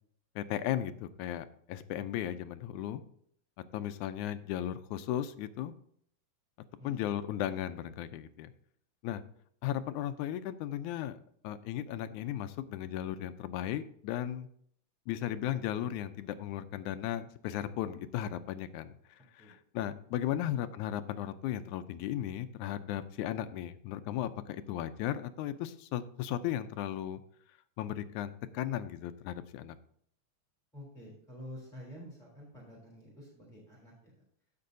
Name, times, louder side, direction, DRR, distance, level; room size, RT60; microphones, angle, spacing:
voice 1, 0.4-3.0 3.7-5.7 6.8-8.5 9.0-9.2 9.6-11.2 11.4-14.5 15.1-19.0 19.4-27.2 27.8-29.8, left 11 dB, 80° left, 11 dB, 1.9 m, -36 dB
voice 2, 6.8-7.2 19.4-19.6 20.3-20.6 30.7-34.2, equal, ahead, -3 dB, 2.9 m, -49 dB
15.5 x 6.8 x 2.6 m, 0.65 s
omnidirectional pair, 3.6 m